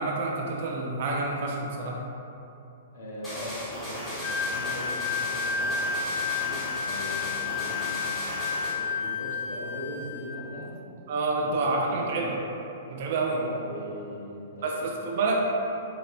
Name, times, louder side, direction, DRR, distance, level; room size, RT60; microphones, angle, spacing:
voice 1, 0.0-2.0 11.1-12.3 12.9-13.4 14.6-15.4, right 3 dB, 55° right, -1 dB, 0.5 m, -28 dB
voice 2, 2.9-10.7 11.3-12.2 13.3-15.4, equal, 80° left, -4 dB, 1.0 m, -40 dB
sound 1, 3.2-8.8, equal, 10° left, 1.3 m, -36 dB
Wind instrument woodwind instrument, 4.2-10.4, left 6 dB, 40° left, 0.3 m, -31 dB
4.0 x 2.7 x 3.3 m, 2.9 s
hypercardioid pair, 140°, 0 cm